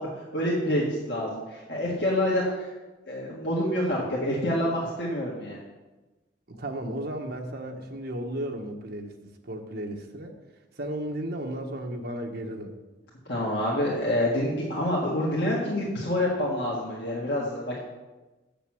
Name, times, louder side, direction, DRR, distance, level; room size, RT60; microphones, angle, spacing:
voice 1, 0.0-2.7 3.1-5.6 13.3-17.8, left 1 dB, 70° left, -5 dB, 1.8 m, -27 dB
voice 2, 6.5-9.2 9.4-10.3 10.8-12.7, right 1 dB, 60° right, 3 dB, 1.2 m, -34 dB
7.0 x 6.8 x 7.8 m, 1.2 s
head